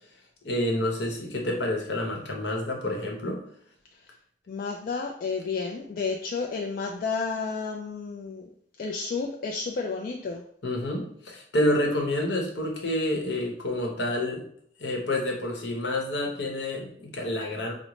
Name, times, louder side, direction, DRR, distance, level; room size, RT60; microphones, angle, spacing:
voice 1, 0.4-3.4 10.6-14.4 14.8-17.7, left 1 dB, 70° left, 1 dB, 0.9 m, -28 dB
voice 2, 4.5-8.5 8.8-10.4, left 4 dB, 50° left, 2 dB, 0.3 m, -31 dB
4.9 x 2.0 x 3.0 m, 0.64 s
head